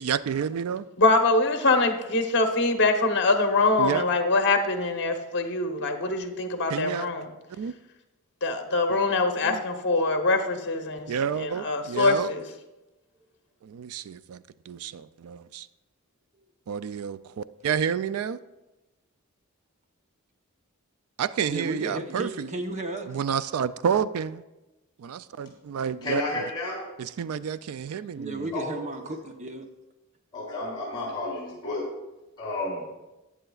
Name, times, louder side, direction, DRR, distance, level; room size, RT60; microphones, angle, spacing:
voice 1, 0.0-0.9 3.8-4.0 6.7-7.1 7.5-7.7 8.9-9.0 9.4-9.6 11.1-12.3 13.6-15.7 16.7-18.4 21.2-22.5 23.1-24.4 25.0-26.2 27.0-28.5, right 7 dB, 80° right, 0.4 m, -30 dB
voice 2, 1.0-7.3 8.4-11.1 11.4-12.4, left 3 dB, 55° left, 1.0 m, -24 dB
voice 3, 21.5-23.2 28.2-29.7, right 2 dB, 35° right, 0.8 m, -34 dB
voice 4, 26.0-26.9 28.5-28.8 30.3-31.9 32.4-32.9, left 2 dB, 20° left, 3.7 m, -32 dB
14.5 x 9.0 x 2.4 m
head